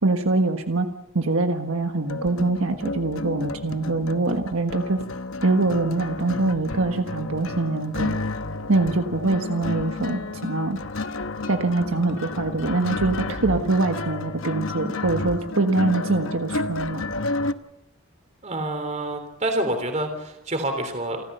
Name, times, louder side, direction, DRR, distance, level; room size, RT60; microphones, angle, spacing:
voice 1, 0.0-0.9 1.1-5.0 5.4-8.2 8.7-10.8 11.5-17.0, right 2 dB, 90° right, 5 dB, 1.5 m, -24 dB
sound 1, 2.1-17.5, left 3 dB, 70° left, 1.0 m, -31 dB
voice 2, 18.4-21.2, right 1 dB, 35° right, 6 dB, 3.4 m, -27 dB
29.0 x 14.5 x 6.8 m, 0.87 s
head